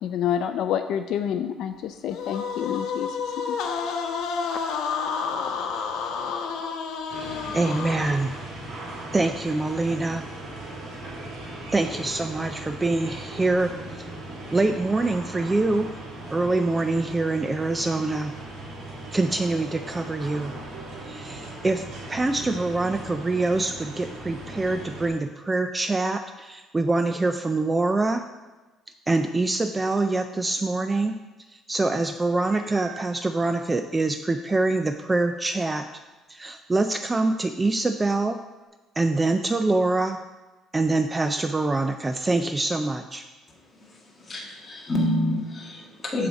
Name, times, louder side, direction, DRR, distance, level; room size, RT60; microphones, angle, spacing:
voice 1, 0.0-3.2 3.5-3.6, left 9 dB, 60° left, 8 dB, 0.4 m, -28 dB
sound 1, 2.1-8.4, left 5 dB, 75° left, 1.0 m, -30 dB
sound 2, 7.1-25.1, right 2 dB, 60° right, 3.1 m, -38 dB
voice 2, 7.5-8.3 9.1-10.2 11.7-14.1 14.5-15.9 16.3-18.4 19.1-20.6 21.0-28.2 29.1-31.2 31.5-35.9 36.3-38.4 39.0-40.2 40.7-43.2, right 2 dB, 15° right, 8 dB, 0.3 m, -25 dB
Meow, 32.5-33.2 33.9-34.0 34.5-34.6 38.6-38.7, right 5 dB, 75° right, 1.5 m, -43 dB
voice 3, 43.7-46.3, left 1 dB, 20° left, -2 dB, 1.5 m, -28 dB
14.0 x 4.9 x 4.0 m, 1.2 s
cardioid pair, 165°, 0 cm